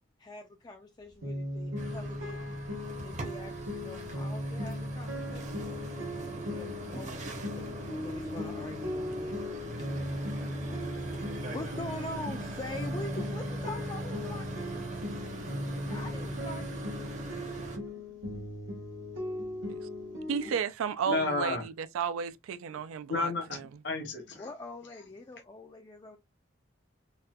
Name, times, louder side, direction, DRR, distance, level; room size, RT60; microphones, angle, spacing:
voice 1, 0.2-2.4 2.9-5.7 6.5-9.4 9.8-9.9 11.1-14.9 15.9-17.0 20.5-20.6 24.4-26.2, left 2 dB, 20° left, 0.3 m, -44 dB
sound 1, 1.2-20.6, left 1 dB, 70° right, 1.0 m, -38 dB
sound 2, 1.8-17.8, right 1 dB, 35° right, 0.7 m, -41 dB
voice 2, 20.3-23.7, right 7 dB, 90° right, 0.4 m, -33 dB
voice 3, 21.1-21.7 23.1-24.5, left 3 dB, 55° left, 0.9 m, -32 dB
4.1 x 2.2 x 2.2 m
head